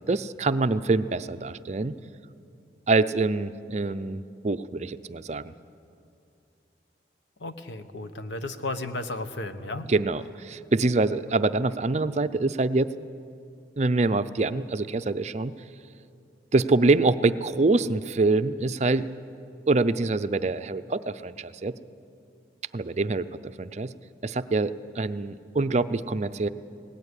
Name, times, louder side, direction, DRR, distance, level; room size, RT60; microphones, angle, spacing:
voice 1, 0.0-1.9 2.9-5.5 9.9-12.9 13.8-15.5 16.5-19.1 19.7-21.8 22.7-23.9 24.2-26.5, right 3 dB, 40° right, 12 dB, 0.5 m, -25 dB
voice 2, 7.4-9.9, left 2 dB, 80° left, 9 dB, 1.2 m, -34 dB
18.5 x 18.0 x 9.9 m, 2.5 s
head